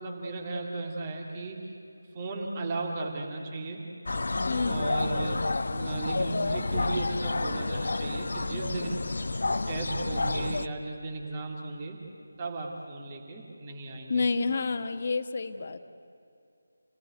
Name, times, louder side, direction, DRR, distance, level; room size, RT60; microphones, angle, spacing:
voice 1, 0.0-1.7 2.1-3.9 4.6-5.4 5.7-9.2 9.7-12.0 12.4-14.3, right 3 dB, 25° right, 0 dB, 2.8 m, -36 dB
sound 1, 4.1-10.7, left 3 dB, 55° left, 0.9 m, -30 dB
voice 2, 4.5-5.0 14.1-15.8, left 4 dB, 40° left, 8 dB, 1.5 m, -29 dB
29.5 x 19.0 x 9.5 m, 2.6 s
figure-of-eight pair, 160°, 0 cm